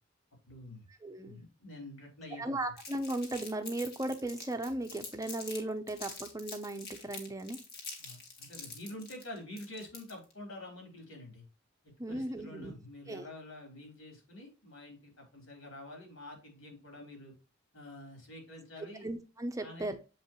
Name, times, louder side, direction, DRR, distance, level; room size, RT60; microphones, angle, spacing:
voice 1, 0.5-0.8 1.2-2.6 8.0-11.4 11.8-17.3 17.7-19.1 19.6-19.9, left 1 dB, 85° left, 1 dB, 3.9 m, -48 dB
voice 2, 1.0-1.4 2.4-7.6 12.0-12.7 13.1-13.3 19.0-20.0, right 1 dB, 15° right, 7 dB, 0.7 m, -36 dB
Crumpling crinkling, 2.8-5.6 5.9-10.3, left 4 dB, 50° left, 2.1 m, -46 dB
7.5 x 5.2 x 3.0 m, 0.32 s
head